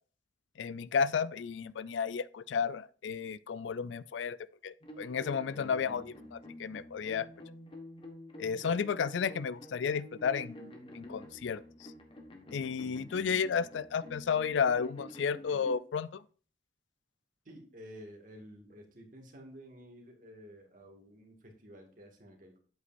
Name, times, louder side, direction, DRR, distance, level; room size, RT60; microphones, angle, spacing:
voice 1, 0.6-4.4 4.6-7.3 8.4-11.6 12.5-16.2, left 6 dB, 90° left, 0.4 m, -32 dB
sound 1, 4.8-15.8, equal, 30° left, 1.4 m, -49 dB
voice 2, 8.4-8.8 12.6-12.8 17.5-22.6, equal, 50° right, 2.1 m, -52 dB
8.2 x 8.0 x 2.6 m
head